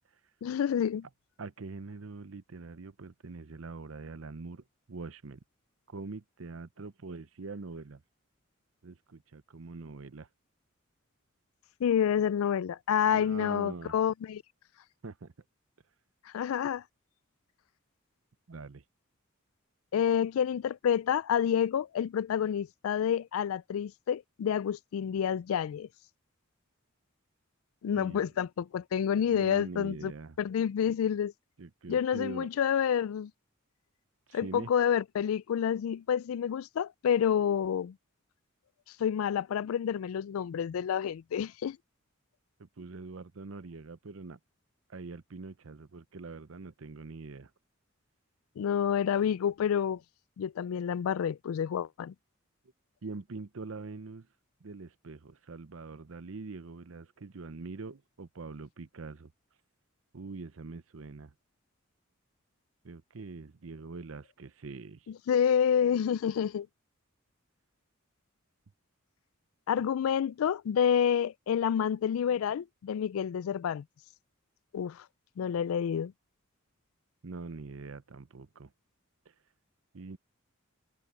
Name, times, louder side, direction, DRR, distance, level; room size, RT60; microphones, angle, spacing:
voice 1, 0.4-1.1 11.8-14.4 16.3-16.8 19.9-25.9 27.8-30.1 30.4-31.3 31.9-33.3 34.3-37.9 39.0-41.8 48.6-50.0 50.4-52.1 65.3-66.7 69.7-73.8 74.7-75.0 75.4-76.1, left 8 dB, 80° left, 0.3 m, -28 dB
voice 2, 1.4-5.4 5.9-8.0 8.8-10.3 13.1-13.9 15.0-15.3 18.5-18.8 27.8-28.3 29.3-30.4 31.6-32.5 34.3-34.7 42.6-44.4 44.9-47.5 53.0-54.3 54.6-59.3 60.1-61.3 62.8-65.1 77.2-78.7 79.9-80.2, right 3 dB, 70° right, 0.7 m, -43 dB
open air
head